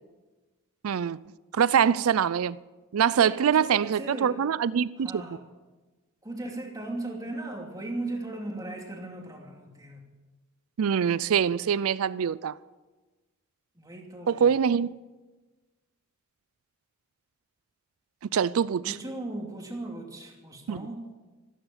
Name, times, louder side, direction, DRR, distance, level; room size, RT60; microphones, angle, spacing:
voice 1, 0.8-1.2 1.5-2.6 2.9-5.2 10.8-12.6 14.3-14.9 18.3-19.0 20.7-20.9, right 7 dB, 85° right, 0.4 m, -24 dB
voice 2, 3.1-4.4 5.0-5.4 6.2-10.0 13.8-14.5 18.8-21.1, right 2 dB, 15° right, 2.7 m, -37 dB
15.0 x 12.5 x 7.2 m
head